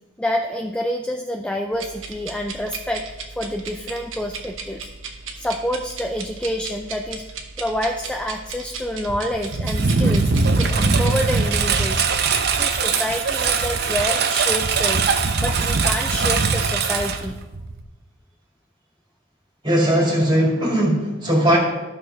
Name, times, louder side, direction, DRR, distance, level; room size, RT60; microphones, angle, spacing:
voice 1, 0.2-3.1 3.4-4.9 5.3-10.3 10.6-17.4, left 1 dB, 5° left, 3 dB, 0.3 m, -28 dB
sound 1, 1.7-12.1, right 4 dB, 80° right, 1.1 m, -36 dB
Engine, 9.1-17.8, right 4 dB, 50° right, 0.6 m, -21 dB
voice 2, 19.6-21.6, equal, 25° right, -2 dB, 2.1 m, -18 dB
12.5 x 6.5 x 3.3 m, 1.1 s
head